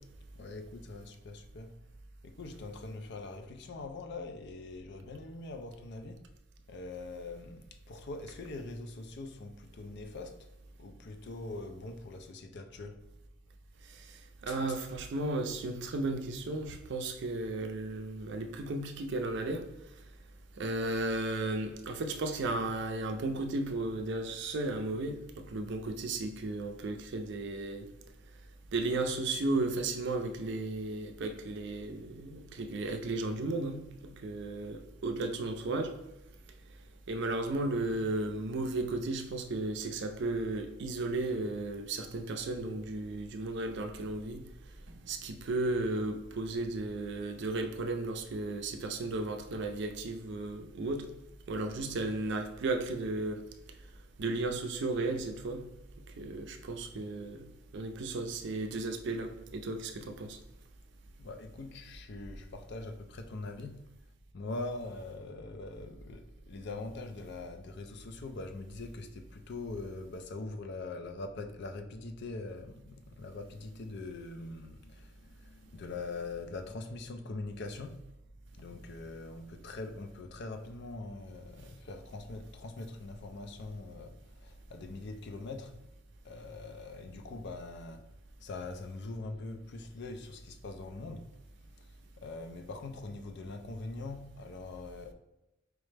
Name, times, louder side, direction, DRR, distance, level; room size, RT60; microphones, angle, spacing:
voice 1, 0.3-1.7 2.2-6.3 6.7-10.5 10.8-13.0 14.5-14.6 61.2-63.9 64.3-78.1 78.5-85.8 86.2-88.1 88.4-91.3 91.8-95.1, left 3 dB, 55° left, 0.4 m, -43 dB
voice 2, 14.4-19.6 20.6-27.9 28.7-33.8 34.2-35.9 37.1-44.4 45.1-51.0 51.5-53.4 54.2-55.6 56.2-57.4 57.7-60.4, right 2 dB, 60° right, 0.4 m, -34 dB
4.7 x 2.1 x 3.2 m
head